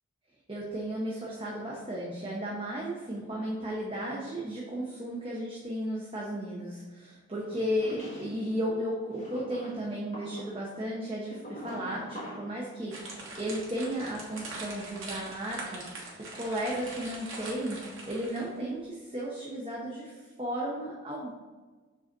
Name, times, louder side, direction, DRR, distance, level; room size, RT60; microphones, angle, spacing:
voice 1, 0.5-17.8 18.1-21.3, equal, 25° right, -4 dB, 0.7 m, -34 dB
sound 1, 7.5-8.5 9.2-12.6, equal, 35° left, 1.6 m, -43 dB
sound 2, 12.9-18.6, right 2 dB, 75° right, 1.5 m, -42 dB
5.1 x 3.9 x 5.2 m, 1.4 s
head